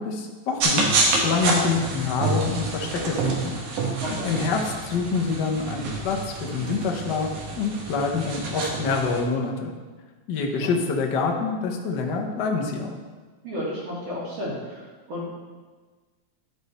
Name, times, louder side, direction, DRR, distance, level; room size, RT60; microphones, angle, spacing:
voice 1, 0.0-3.5 4.1-7.3 7.5-9.7 10.3-12.9, left 4 dB, 85° left, 2 dB, 0.9 m, -26 dB
sound 1, 0.6-9.2, right 3 dB, 90° right, 2.7 m, -27 dB
voice 2, 13.4-15.3, equal, 55° right, -8 dB, 2.7 m, -32 dB
11.0 x 5.2 x 4.2 m, 1.3 s
omnidirectional pair, 3.3 m